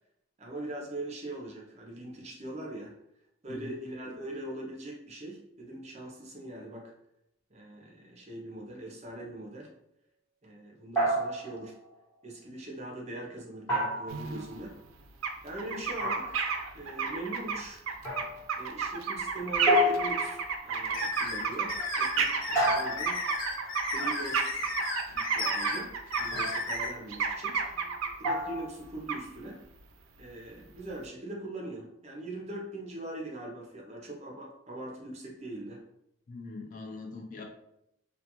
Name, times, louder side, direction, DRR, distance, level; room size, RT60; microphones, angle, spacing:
voice 1, 0.4-3.0 3.4-6.9 7.5-9.7 10.4-11.8 12.2-14.8 15.4-16.4 16.7-17.8 18.6-23.2 23.8-24.7 25.1-27.6 28.2-29.7 30.2-35.8, right 1 dB, 35° right, -1 dB, 0.5 m, -41 dB
voice 2, 3.5-3.8 36.3-37.4, left 3 dB, 40° left, 1 dB, 0.4 m, -42 dB
sound 1, 11.0-11.7 13.7-14.5 16.0-16.6 18.0-18.5 19.7-20.6 22.6-23.4 26.3-26.7 28.2-28.7, equal, 15° left, 1.0 m, -29 dB
sound 2, 14.1-14.6 15.2-15.3 15.6-28.3 29.1-29.2, right 5 dB, 85° right, 0.4 m, -32 dB
sound 3, 20.9-26.9, left 3 dB, 70° left, 0.8 m, -35 dB
2.3 x 2.2 x 2.8 m, 0.80 s
head